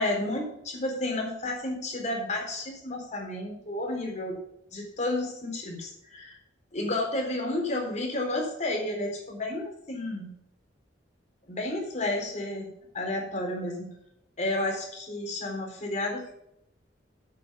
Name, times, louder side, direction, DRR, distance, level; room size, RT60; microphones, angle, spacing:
voice 1, 0.0-4.4 4.7-6.4 6.7-10.3 11.5-13.9 14.4-16.3, left 1 dB, 40° left, 0 dB, 4.0 m, -31 dB
9.1 x 8.5 x 5.8 m, 0.78 s
head